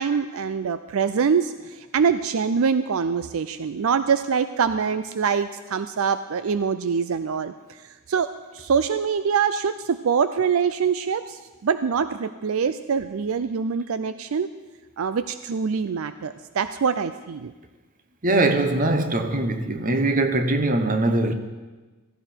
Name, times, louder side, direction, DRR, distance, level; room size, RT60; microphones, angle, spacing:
voice 1, 0.0-14.5 15.0-17.5, right 6 dB, 70° right, 0.4 m, -24 dB
voice 2, 18.2-21.3, right 2 dB, 40° right, 1.1 m, -22 dB
16.0 x 14.5 x 4.5 m
head